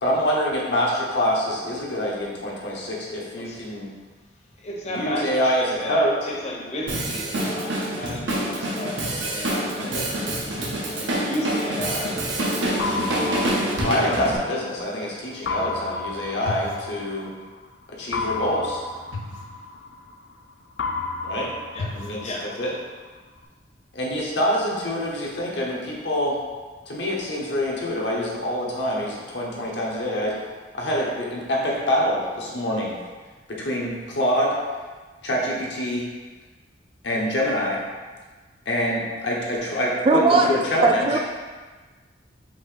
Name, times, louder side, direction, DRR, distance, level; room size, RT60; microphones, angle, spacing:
voice 1, 0.0-3.9 4.9-6.1 13.8-17.3 17.9-18.8 21.2-21.5 21.9-22.3 22.6-22.7 23.9-26.4 26.9-30.3 30.7-32.9 33.5-34.6 35.2-36.1 37.0-37.8 38.6-41.2, equal, 70° left, -4 dB, 1.0 m, -25 dB
voice 2, 3.4-3.8 4.6-13.5 21.7-22.0 22.2-22.5, equal, 35° left, -3 dB, 0.8 m, -34 dB
Drum kit, 6.9-14.4, right 1 dB, 85° right, 0.8 m, -26 dB
sound 1, 12.8-14.9 15.5-17.5 18.1-20.4 20.8-22.9, left 3 dB, 90° left, 0.4 m, -32 dB
voice 3, 40.1-40.5 40.8-41.2, right 3 dB, 30° right, 4 dB, 0.3 m, -18 dB
5.0 x 2.7 x 3.8 m, 1.4 s
head